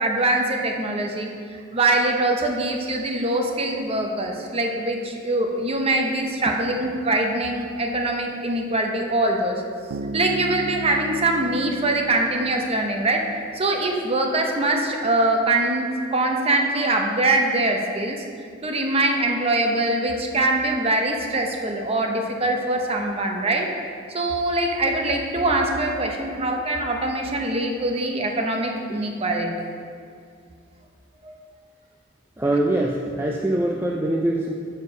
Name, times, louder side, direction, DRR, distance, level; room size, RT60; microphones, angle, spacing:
voice 1, 0.0-9.6 10.1-13.3 13.5-18.2 18.6-23.7 24.1-29.5 31.2-31.3, right 2 dB, 30° right, 2 dB, 0.8 m, -23 dB
Bass guitar, 9.9-13.4, right 4 dB, 85° right, 0.3 m, -35 dB
voice 2, 32.4-34.5, right 1 dB, 10° right, -1 dB, 0.4 m, -23 dB
6.7 x 6.5 x 5.3 m, 2.3 s
head